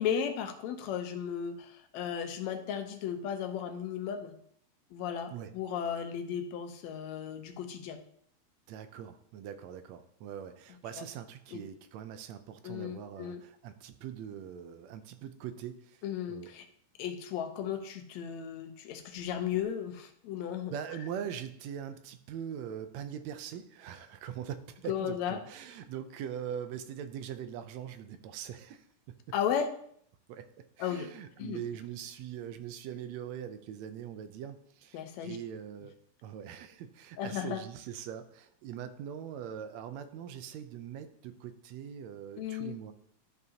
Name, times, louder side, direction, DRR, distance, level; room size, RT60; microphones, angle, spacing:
voice 1, 0.0-4.3 4.9-8.0 11.0-11.1 11.5-11.6 12.6-13.4 16.0-16.6 17.0-20.7 24.9-25.4 29.3-29.7 30.8-31.1 31.4-31.6 34.9-35.4 37.2-37.6 42.4-42.8, left 8 dB, 75° left, 6 dB, 2.0 m, -35 dB
voice 2, 8.7-16.0 16.3-16.5 20.7-28.8 30.3-30.4 30.8-36.0 36.2-42.9, right 9 dB, 80° right, 9 dB, 1.8 m, -42 dB
12.5 x 5.3 x 2.8 m, 0.65 s
omnidirectional pair, 3.3 m